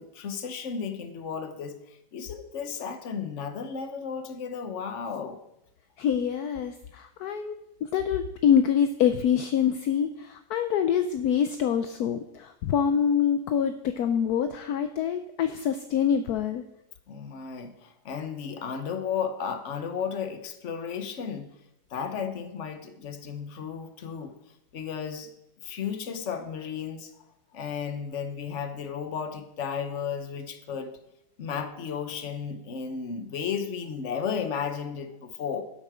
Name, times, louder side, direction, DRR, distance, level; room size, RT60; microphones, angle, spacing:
voice 1, 0.0-5.4 17.1-21.5 21.9-24.4 24.7-25.3 25.6-27.1 27.5-31.0 31.4-35.6, left 6 dB, 45° left, 8 dB, 1.1 m, -34 dB
voice 2, 6.0-7.6 7.8-16.6, left 8 dB, 70° left, 9 dB, 1.0 m, -25 dB
11.5 x 8.2 x 5.0 m, 0.86 s
omnidirectional pair, 2.1 m